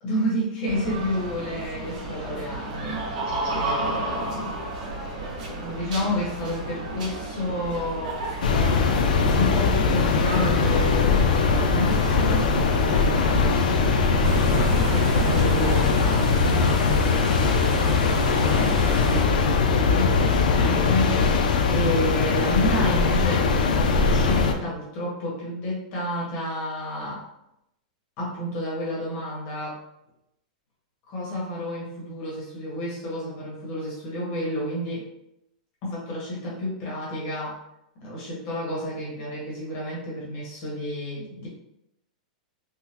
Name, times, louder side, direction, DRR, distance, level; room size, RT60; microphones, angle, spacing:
voice 1, 0.0-3.0 3.5-4.5 5.5-8.2 9.4-12.6 12.8-14.2 14.9-16.3 16.6-21.3 21.7-27.2 28.2-29.8 31.1-35.1 35.8-37.6 38.0-41.5, left 1 dB, 30° left, -5 dB, 1.2 m, -30 dB
sound 1, 0.6-16.1, right 2 dB, 75° right, 1.1 m, -33 dB
sound 2, 8.4-24.5, left 4 dB, 85° left, 0.4 m, -21 dB
sound 3, 14.2-19.2, right 2 dB, 45° right, 0.6 m, -32 dB
3.7 x 2.1 x 2.9 m, 0.82 s
supercardioid pair, 175°, 4 cm